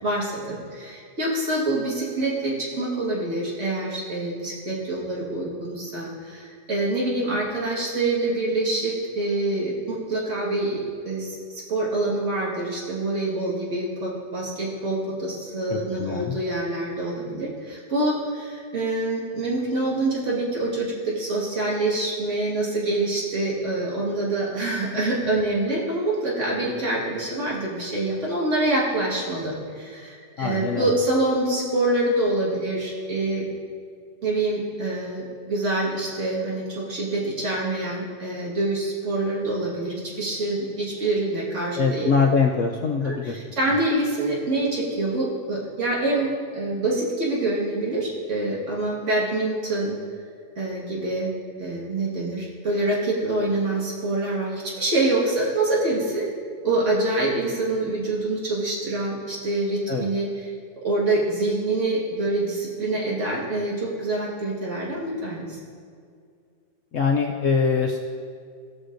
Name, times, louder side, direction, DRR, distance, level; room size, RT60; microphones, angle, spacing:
voice 1, 0.0-33.5 34.2-42.1 43.0-50.0 50.6-56.3 56.6-60.5 60.8-65.6, right 2 dB, 45° right, -5 dB, 1.9 m, -26 dB
voice 2, 15.7-16.3 30.4-30.9 41.8-43.4 59.9-60.1 66.9-68.0, left 5 dB, 75° left, 2 dB, 0.7 m, -23 dB
15.0 x 6.4 x 2.5 m, 2.2 s
omnidirectional pair, 1.8 m